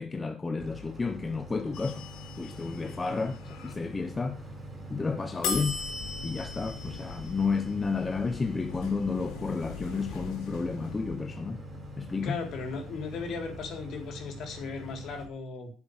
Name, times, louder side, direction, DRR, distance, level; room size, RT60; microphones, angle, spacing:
voice 1, 0.0-2.0 2.4-4.4 4.9-5.8 6.2-11.6 12.0-12.3, left 4 dB, 20° left, 1.0 m, -31 dB
Boat Water vehicle, 0.6-15.3, equal, 20° right, 4.3 m, -44 dB
sound 1, 1.7-3.7 5.4-11.4, left 5 dB, 75° left, 3.6 m, -39 dB
voice 2, 12.2-15.7, left 4 dB, 60° left, 3.9 m, -37 dB
10.5 x 7.4 x 6.7 m
cardioid pair, 115°, 0 cm